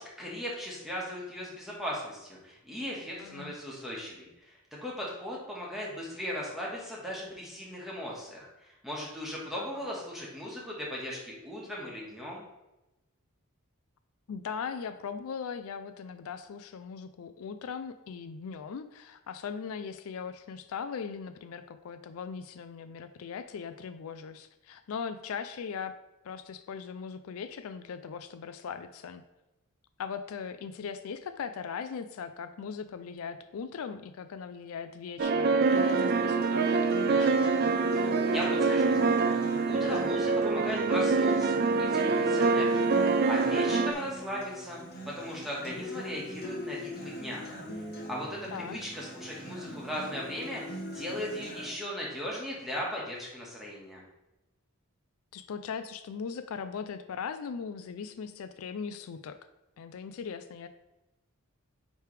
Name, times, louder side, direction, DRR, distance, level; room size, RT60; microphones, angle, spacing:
voice 1, 0.0-12.4 38.0-39.2 39.6-44.8 45.1-47.8 48.1-50.6 50.9-54.0, equal, ahead, -5 dB, 1.5 m, -38 dB
voice 2, 3.2-3.5 9.5-9.9 14.3-25.9 26.2-29.2 30.0-37.5 43.8-44.1 48.5-48.8 55.3-59.4 59.8-60.7, left 6 dB, 75° left, 10 dB, 0.4 m, -39 dB
sound 1, 35.2-43.9, right 4 dB, 45° right, 0.3 m, -25 dB
Acoustic guitar, 35.7-51.7, equal, 45° left, 1.2 m, -41 dB
9.2 x 3.4 x 3.3 m, 0.95 s
head